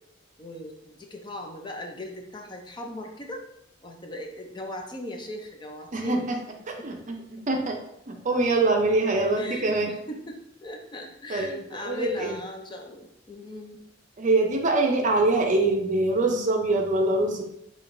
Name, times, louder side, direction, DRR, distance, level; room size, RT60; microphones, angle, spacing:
voice 1, 0.4-3.4 3.8-6.3 6.8-6.9 9.3-13.8, left 1 dB, 25° left, 1 dB, 0.6 m, -38 dB
voice 2, 5.9-6.4 6.7-7.8 8.1-9.9 11.3-12.4 14.2-17.4, right 2 dB, 40° right, 3 dB, 0.6 m, -24 dB
6.3 x 3.1 x 2.6 m, 0.77 s
head